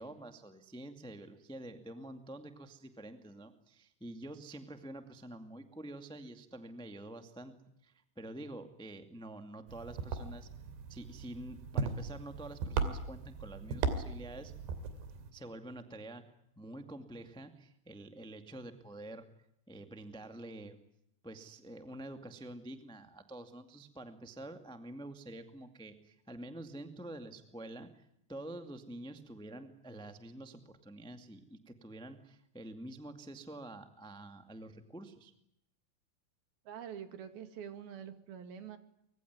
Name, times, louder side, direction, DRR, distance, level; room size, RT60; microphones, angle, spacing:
voice 1, 0.0-7.5 7.8-10.5 10.9-14.5 15.3-19.3 19.7-20.8 21.2-35.3, right 1 dB, 5° left, 7 dB, 0.6 m, -47 dB
sound 1, 9.7-15.3, right 5 dB, 80° right, 4.7 m, -38 dB
voice 2, 36.7-38.8, right 8 dB, 65° right, 9 dB, 4.0 m, -46 dB
25.0 x 23.0 x 9.6 m, 0.77 s
omnidirectional pair, 4.8 m